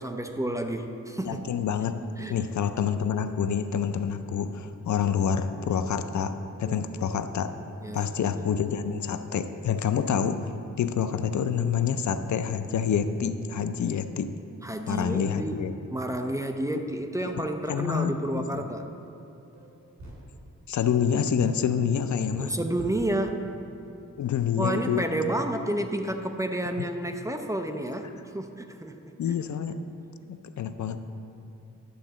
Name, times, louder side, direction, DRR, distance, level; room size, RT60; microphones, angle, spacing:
voice 1, 0.0-1.4 2.2-2.4 6.6-6.8 7.8-8.1 14.6-15.6 15.9-18.9 22.4-23.5 24.6-28.1 28.3-29.1, right 1 dB, 10° right, 5 dB, 0.5 m, -30 dB
voice 2, 1.2-2.0 2.3-7.5 7.9-10.4 10.8-14.3 14.9-15.7 16.7-16.8 17.3-17.4 17.7-18.7 20.7-22.5 24.2-25.1 26.8-26.9 28.0-28.2 29.2-29.8 30.3-31.0, left 7 dB, 75° left, 10 dB, 0.5 m, -27 dB
sound 1, 19.5-19.7 20.0-20.2 22.3-22.5 22.8-22.9, right 2 dB, 65° right, 2.0 m, -44 dB
11.0 x 3.9 x 7.4 m, 2.7 s
wide cardioid pair, 140°, 30 cm